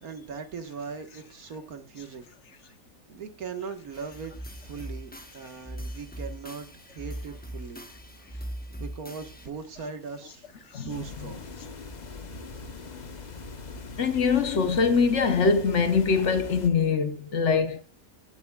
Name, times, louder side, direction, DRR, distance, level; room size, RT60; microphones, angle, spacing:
voice 1, 0.0-2.3 3.1-4.3 4.6-6.7 6.9-7.9 8.8-10.5 10.9-11.5, right 5 dB, 75° right, 1.9 m, -39 dB
sound 1, 3.9-9.5, right 1 dB, 5° left, 1.0 m, -40 dB
sound 2, 10.9-16.7, left 4 dB, 35° left, 0.9 m, -41 dB
voice 2, 14.0-17.8, left 5 dB, 55° left, 1.1 m, -23 dB
17.5 x 7.4 x 2.3 m
omnidirectional pair, 1.6 m